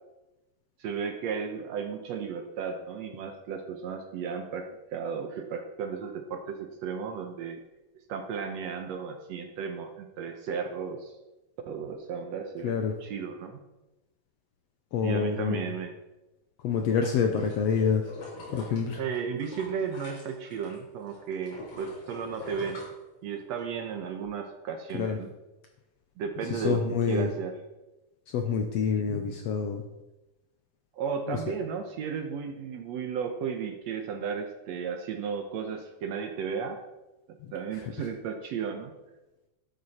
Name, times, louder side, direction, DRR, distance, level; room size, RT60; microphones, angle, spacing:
voice 1, 0.8-7.6 8.1-11.1 11.7-12.7 13.0-13.6 15.0-15.9 19.0-22.8 23.2-25.3 26.2-26.8 27.1-27.5 30.9-36.8 37.5-38.9, right 6 dB, 70° right, 5 dB, 1.8 m, -34 dB
voice 2, 12.6-13.0 14.9-15.7 16.6-18.1 18.5-19.0 24.9-25.2 26.4-27.3 28.3-29.8 31.3-31.5 37.4-38.1, left 6 dB, 75° left, 5 dB, 1.6 m, -28 dB
sound 1, 16.6-20.8 21.1-23.6 24.0-24.1, left 2 dB, 50° left, 5.1 m, -44 dB
12.5 x 9.8 x 4.2 m, 1.0 s
omnidirectional pair, 3.7 m